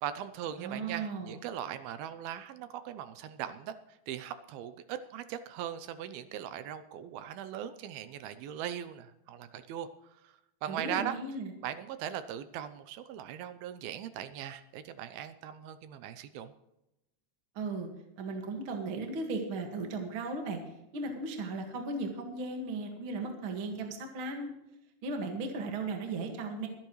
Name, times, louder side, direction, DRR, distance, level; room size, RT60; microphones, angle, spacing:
voice 1, 0.0-9.9 10.2-10.3 10.6-11.1 11.6-16.5, right 10 dB, 80° right, 11 dB, 2.3 m, -39 dB
voice 2, 0.6-1.3 10.7-11.5 17.5-17.9 18.2-20.6 20.9-24.5 25.0-26.7, right 3 dB, 50° right, 3 dB, 1.6 m, -36 dB
23.5 x 10.0 x 3.1 m, 0.88 s
omnidirectional pair, 4.9 m